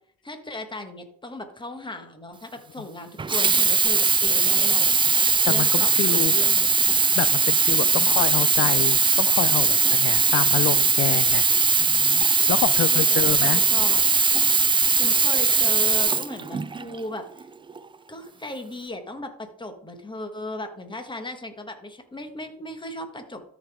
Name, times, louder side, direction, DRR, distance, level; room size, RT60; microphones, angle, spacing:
voice 1, 0.2-5.2 5.5-6.8 12.9-14.1 14.7-17.5 18.1-23.4, left 1 dB, 15° left, 6 dB, 1.6 m, -37 dB
Sink (filling or washing), 3.2-17.0 17.7-17.8, right 5 dB, 15° right, 0.4 m, -20 dB
voice 2, 5.5-6.3 7.2-11.5 11.8-13.6, left 12 dB, 45° left, 15 dB, 0.4 m, -28 dB
13.5 x 5.2 x 3.6 m, 0.65 s
cardioid pair, 90°, 31 cm